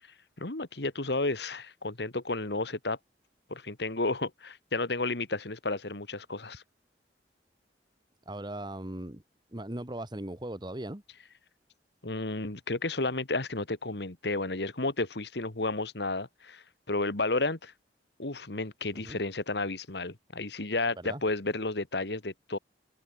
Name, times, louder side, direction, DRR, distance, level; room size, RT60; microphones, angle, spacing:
voice 1, 0.4-3.0 3.5-6.6 12.0-17.7 18.2-22.6, left 2 dB, 70° left, 2.0 m, -32 dB
voice 2, 8.2-9.2 9.5-11.0 18.9-19.2 21.0-21.2, right 1 dB, 25° right, 1.6 m, -38 dB
head